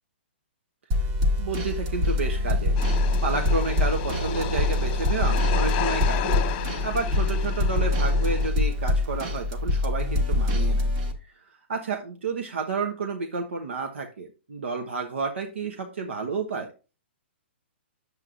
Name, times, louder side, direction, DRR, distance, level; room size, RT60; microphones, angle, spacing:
sound 1, 0.9-11.1, left 2 dB, 30° right, 1.2 m, -24 dB
voice 1, 1.4-6.5 6.8-10.9 11.2-16.7, right 4 dB, 85° right, 4 dB, 1.1 m, -31 dB
sound 2, 2.8-8.5, left 8 dB, 30° left, 1.2 m, -33 dB
9.3 x 7.5 x 2.5 m, 0.32 s
hypercardioid pair, 155°, 6 cm